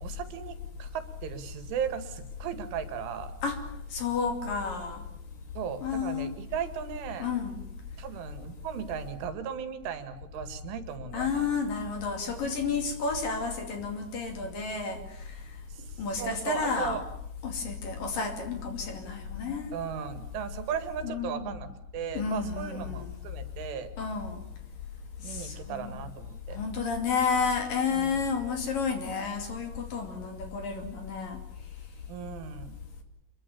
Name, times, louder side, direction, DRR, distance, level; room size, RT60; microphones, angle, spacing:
voice 1, 0.0-3.3 5.6-7.3 8.0-11.5 15.7-17.0 19.7-21.7 21.9-23.9 25.2-26.6 27.9-28.1 32.1-32.7, right 8 dB, 75° right, 10 dB, 4.2 m, -36 dB
voice 2, 3.9-5.0 5.8-6.3 7.2-7.5 11.1-15.0 16.0-17.0 17.4-19.8 21.0-21.6 22.1-23.1 24.0-24.4 25.3-26.0 26.5-31.4, left 5 dB, 50° left, 6 dB, 3.8 m, -31 dB
26.0 x 22.5 x 7.1 m, 0.79 s
omnidirectional pair, 5.7 m